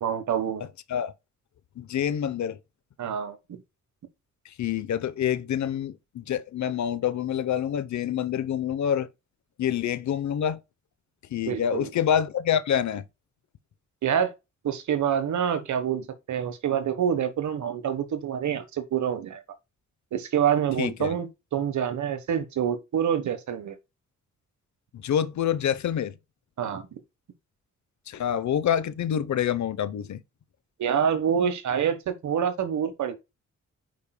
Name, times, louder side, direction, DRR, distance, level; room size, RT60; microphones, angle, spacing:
voice 1, 0.0-0.6 3.0-3.4 11.5-11.9 14.0-14.3 14.6-19.4 20.1-23.8 26.6-26.9 30.8-33.1, right 8 dB, 70° right, 1.3 m, -26 dB
voice 2, 1.8-2.6 4.5-9.1 9.6-10.6 11.3-13.0 20.8-21.2 24.9-26.1 28.1-30.2, left 9 dB, 70° left, 0.9 m, -27 dB
8.4 x 5.2 x 2.3 m
cardioid pair, 70°, 30 cm